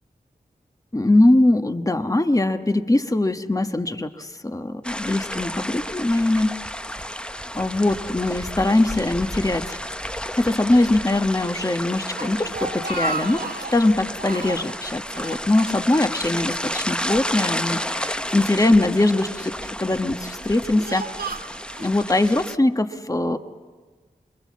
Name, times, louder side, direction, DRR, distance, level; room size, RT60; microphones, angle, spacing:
voice 1, 0.9-6.6 7.5-9.8 10.3-21.1 21.8-23.4, left 2 dB, 20° left, 8 dB, 1.2 m, -21 dB
sound 1, 4.8-22.6, equal, 5° left, 0.7 m, -32 dB
Speech, 12.2-13.8 14.2-14.7 15.1-16.2 16.5-16.6 17.5-18.5 19.2-19.6 20.2-21.9, right 3 dB, 70° right, 2.0 m, -33 dB
29.0 x 22.0 x 7.5 m, 1.4 s
cardioid pair, 40°, 16 cm